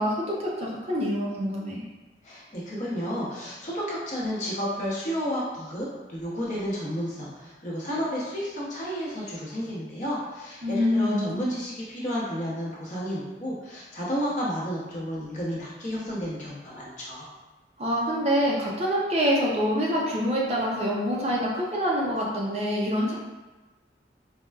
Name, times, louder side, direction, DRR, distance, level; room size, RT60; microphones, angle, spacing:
voice 1, 0.0-1.8 10.6-11.4 17.8-23.1, equal, 35° right, -4 dB, 0.5 m, -26 dB
voice 2, 2.2-17.3, equal, 45° left, -7 dB, 0.8 m, -31 dB
4.1 x 2.2 x 2.3 m, 1.2 s
head